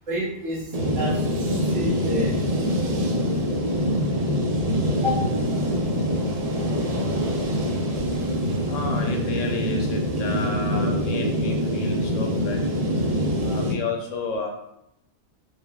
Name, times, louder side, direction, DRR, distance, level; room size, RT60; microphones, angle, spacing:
voice 1, 0.1-2.3 4.9-5.2 6.7-6.8 8.0-8.1 13.4-13.5, left 1 dB, 75° right, -5 dB, 1.6 m, -30 dB
sound 1, 0.7-13.7, equal, 50° right, 0.4 m, -24 dB
voice 2, 8.7-12.7 13.4-14.5, left 2 dB, 75° left, 3 dB, 1.0 m, -31 dB
4.5 x 3.3 x 2.3 m, 0.82 s
omnidirectional pair, 1.3 m